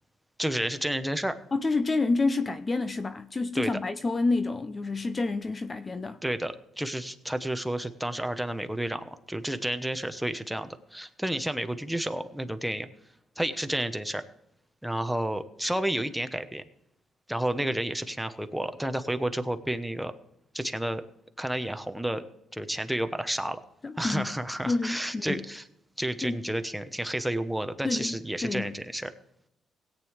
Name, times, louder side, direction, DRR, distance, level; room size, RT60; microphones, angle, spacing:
voice 1, 0.4-1.4 3.5-3.7 6.2-12.9 13.4-14.2 14.8-16.6 17.3-20.1 20.5-21.0 21.4-22.3 22.5-23.6 24.0-25.6 26.0-29.1, right 1 dB, 5° right, 1.1 m, -31 dB
voice 2, 1.5-6.2 23.8-24.3 24.7-25.5 26.2-26.5 27.8-28.1 28.4-28.7, left 3 dB, 30° left, 0.6 m, -28 dB
17.5 x 9.2 x 3.3 m
cardioid pair, 90°, 0 cm